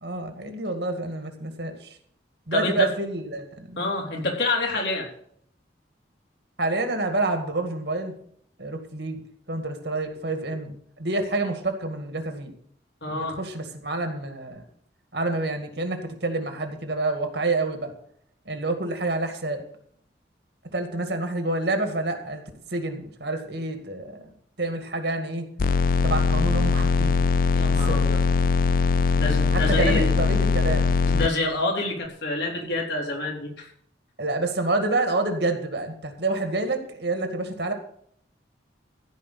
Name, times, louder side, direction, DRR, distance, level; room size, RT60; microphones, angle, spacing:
voice 1, 0.0-2.0 2.5-3.8 6.6-8.1 8.6-12.5 13.1-14.6 15.1-17.9 18.5-19.6 20.7-22.4 22.7-24.2 24.6-25.5 26.0-27.2 27.9-28.0 29.5-31.0 34.2-37.7, right 2 dB, 65° right, 6 dB, 2.1 m, -28 dB
voice 2, 2.5-2.9 3.8-5.1 13.0-13.4 27.5-28.2 29.2-30.1 31.1-33.7, left 2 dB, 65° left, -1 dB, 3.9 m, -27 dB
sound 1, 25.6-31.3, left 4 dB, 50° left, 0.4 m, -21 dB
15.0 x 5.3 x 8.5 m, 0.65 s
head